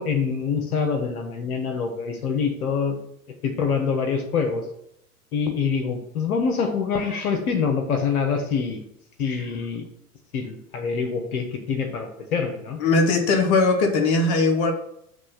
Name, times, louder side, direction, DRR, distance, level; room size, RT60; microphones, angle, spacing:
voice 1, 0.0-3.0 3.4-4.6 5.3-8.8 9.2-9.8 10.3-12.8, left 5 dB, 75° left, 5 dB, 1.4 m, -25 dB
voice 2, 12.8-14.7, left 3 dB, 50° left, 4 dB, 1.5 m, -19 dB
7.9 x 3.3 x 5.8 m, 0.75 s
hypercardioid pair, 100°, 45 cm